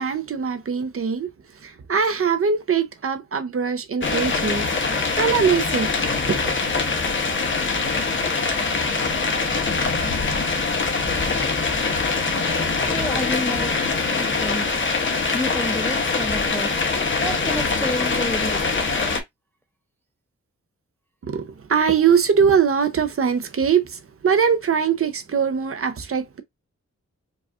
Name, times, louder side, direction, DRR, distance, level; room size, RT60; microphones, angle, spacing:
voice 1, 0.0-6.5 21.2-26.4, right 6 dB, 50° right, 0.6 m, -22 dB
sound 1, 4.0-19.2, left 4 dB, 40° left, 0.8 m, -23 dB
voice 2, 12.8-14.7 15.3-18.7, left 1 dB, 5° left, 0.4 m, -30 dB
4.8 x 2.4 x 2.4 m
wide cardioid pair, 155°, 29 cm